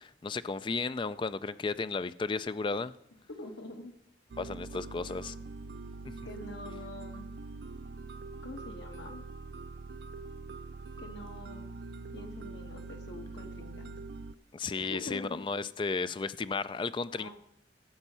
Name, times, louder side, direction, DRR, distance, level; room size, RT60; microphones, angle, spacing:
voice 1, 0.0-2.9 4.4-5.4 6.0-6.1 14.5-17.3, left 4 dB, 25° left, 0.3 m, -34 dB
voice 2, 3.3-3.9 6.2-7.3 8.4-9.2 11.0-11.7 12.1-14.1 14.8-15.4 17.1-17.3, left 2 dB, 70° left, 1.6 m, -45 dB
sound 1, 4.3-14.4, right 3 dB, 60° right, 0.4 m, -44 dB
13.5 x 7.2 x 5.5 m
head